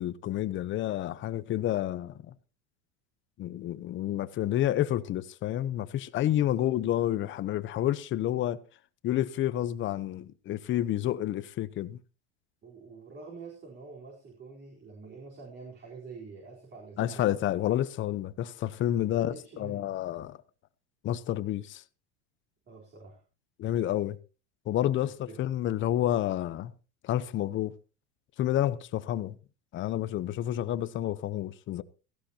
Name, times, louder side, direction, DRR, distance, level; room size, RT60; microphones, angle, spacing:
voice 1, 0.0-2.1 3.4-8.6 9.0-12.0 17.0-20.4 21.0-21.8 23.6-24.2 24.7-26.7 27.0-27.7 28.4-29.3 29.7-31.8, left 12 dB, 35° left, 0.9 m, -29 dB
voice 2, 6.3-6.7 12.6-17.3 18.9-19.9 22.7-23.2 25.0-25.4, right 4 dB, 30° right, 4.1 m, -47 dB
17.0 x 15.5 x 2.9 m
supercardioid pair, 135°, 35 cm